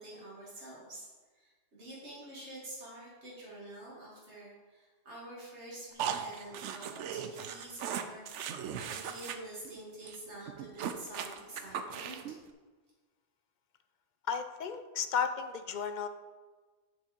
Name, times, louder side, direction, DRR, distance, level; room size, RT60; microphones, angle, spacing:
voice 1, 0.0-8.3 8.8-12.2, right 1 dB, 70° right, -7 dB, 2.5 m, -48 dB
sound 1, 6.0-9.4 9.6-9.8 10.1-10.2 10.5-12.4, right 8 dB, 90° right, 0.9 m, -38 dB
voice 2, 14.3-16.1, left 6 dB, 55° left, 9 dB, 0.5 m, -33 dB
7.3 x 5.5 x 5.2 m, 1.4 s
omnidirectional pair, 1.2 m